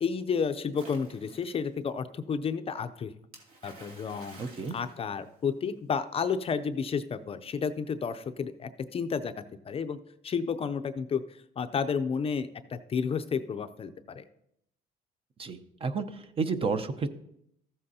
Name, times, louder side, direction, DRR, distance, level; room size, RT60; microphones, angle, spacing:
voice 1, 0.0-3.1 3.6-4.4 4.7-9.3 9.7-10.0 10.2-11.2 11.6-14.2, left 6 dB, 35° left, 10 dB, 0.5 m, -31 dB
Splash splatter, 0.7-1.7 3.3-5.8, right 3 dB, 60° right, 2.3 m, -51 dB
voice 2, 4.4-4.8 15.4-17.1, right 4 dB, 35° right, 10 dB, 0.7 m, -31 dB
14.0 x 7.7 x 2.8 m, 0.75 s
cardioid pair, 110°, 17 cm